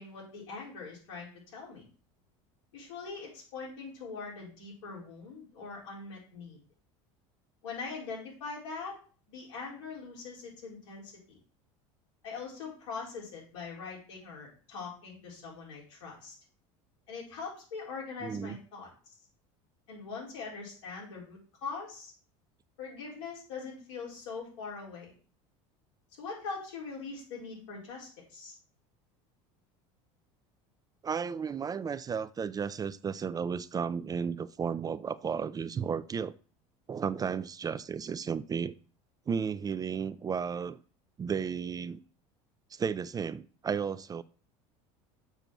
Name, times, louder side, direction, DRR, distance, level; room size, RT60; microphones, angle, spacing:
voice 1, 0.0-1.9 2.7-6.6 7.6-8.9 9.3-11.4 12.2-16.4 17.1-19.1 19.9-22.1 22.8-25.1 26.2-28.5, left 4 dB, 90° left, 4.2 m, -42 dB
voice 2, 18.2-18.6 31.0-36.3 36.9-38.8 39.3-40.8 41.2-42.0 42.7-44.2, right 6 dB, 25° right, 0.4 m, -33 dB
6.8 x 4.5 x 6.1 m
supercardioid pair, 95°, 15 cm